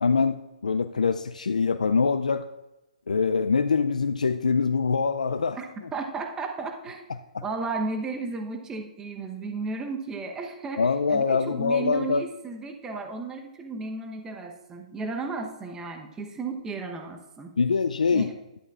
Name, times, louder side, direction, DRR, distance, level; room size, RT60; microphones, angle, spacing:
voice 1, 0.0-2.5 3.1-5.6 7.3-7.4 10.8-12.2 17.6-18.3, left 5 dB, 85° left, 9 dB, 0.4 m, -24 dB
voice 2, 5.9-7.1 7.4-17.5 18.1-18.3, right 3 dB, 15° right, 4 dB, 0.9 m, -34 dB
11.5 x 9.9 x 2.4 m, 0.99 s
hypercardioid pair, 130°, 4 cm